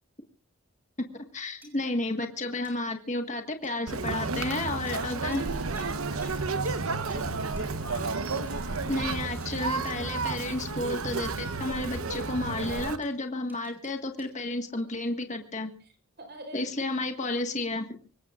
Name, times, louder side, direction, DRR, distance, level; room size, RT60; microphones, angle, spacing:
voice 1, 1.3-5.4 7.8-8.1 8.9-15.7 16.5-17.9, left 2 dB, 35° left, 5 dB, 1.6 m, -32 dB
sound 1, 1.6-2.1 2.6-3.1 3.6-4.1 4.9-10.8 13.0-14.6, left 1 dB, 10° right, 6.7 m, -56 dB
voice 2, 3.9-8.4 8.8-9.3 15.8-16.7, right 2 dB, 50° right, 5 dB, 5.5 m, -46 dB
Conversation, 3.9-13.0, right 4 dB, 80° right, 1.1 m, -32 dB
sound 2, 7.5-12.6, left 1 dB, 60° left, 3.1 m, -50 dB
25.0 x 20.0 x 2.5 m, 0.40 s
head